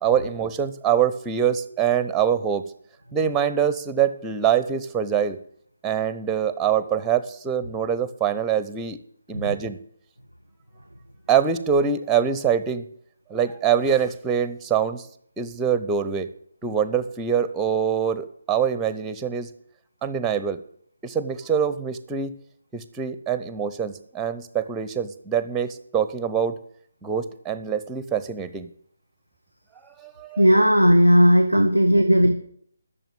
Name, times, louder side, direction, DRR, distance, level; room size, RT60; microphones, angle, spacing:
voice 1, 0.0-2.6 3.1-5.4 5.8-9.0 9.3-9.8 11.3-12.9 13.3-15.1 15.4-16.3 16.6-19.5 20.0-20.6 21.0-22.4 22.7-26.6 27.0-28.7 30.0-30.5, right 8 dB, 10° right, 13 dB, 0.7 m, -24 dB
voice 2, 30.4-32.3, equal, 90° left, 6 dB, 1.3 m, -16 dB
12.0 x 7.0 x 9.0 m, 0.65 s
figure-of-eight pair, 145°, 0 cm